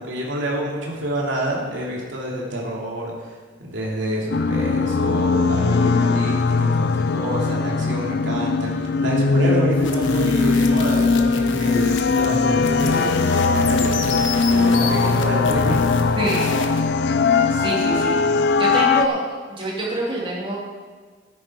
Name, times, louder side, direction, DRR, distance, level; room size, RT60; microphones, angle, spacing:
voice 1, 0.0-15.8, equal, 80° right, -3 dB, 2.7 m, -28 dB
sound 1, 4.3-19.1, left 4 dB, 60° left, 0.5 m, -20 dB
sound 2, 9.7-16.8, left 3 dB, 85° left, 1.3 m, -30 dB
voice 2, 16.1-16.5 17.5-18.3 18.6-19.2 19.5-20.6, right 2 dB, 30° right, -4 dB, 2.9 m, -26 dB
13.5 x 9.9 x 4.5 m, 1.5 s
head